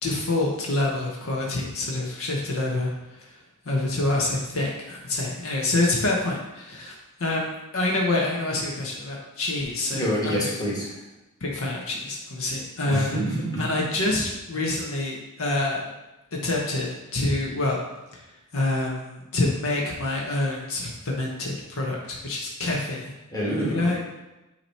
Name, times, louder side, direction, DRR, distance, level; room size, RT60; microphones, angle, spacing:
voice 1, 0.0-3.3 3.6-6.9 7.2-10.4 11.4-13.1 13.6-15.8 16.4-17.8 18.5-23.1 23.6-24.0, left 2 dB, 65° left, -2 dB, 1.0 m, -26 dB
voice 2, 9.9-10.9 12.9-13.6 23.3-23.9, equal, 15° left, -6 dB, 1.6 m, -27 dB
8.6 x 3.0 x 4.3 m, 1.0 s
head